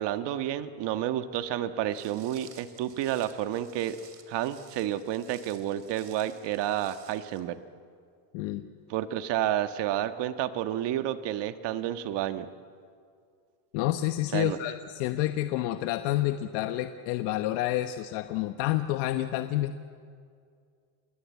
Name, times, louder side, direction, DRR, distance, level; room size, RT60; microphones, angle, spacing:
voice 1, 0.0-4.0 4.3-7.6 8.9-12.5 14.3-14.6, right 12 dB, 60° right, 9 dB, 1.5 m, -30 dB
Walk footsteps, 1.9-7.4, right 7 dB, 30° right, 3.1 m, -54 dB
voice 2, 8.3-8.7 13.7-19.8, left 14 dB, 80° left, 8 dB, 1.2 m, -29 dB
30.0 x 22.5 x 8.4 m, 2.2 s
cardioid pair, 130°, 48 cm